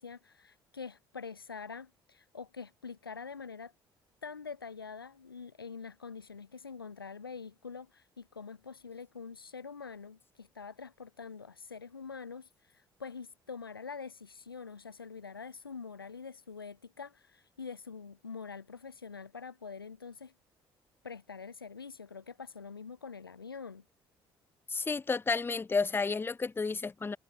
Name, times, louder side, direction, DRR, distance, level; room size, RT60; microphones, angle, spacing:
voice 1, 0.0-3.7 4.2-20.3 21.0-23.8, left 5 dB, 90° left, 1.3 m, -45 dB
voice 2, 24.7-27.2, left 4 dB, 20° left, 0.6 m, -31 dB
open air
figure-of-eight pair, 50°, 12 cm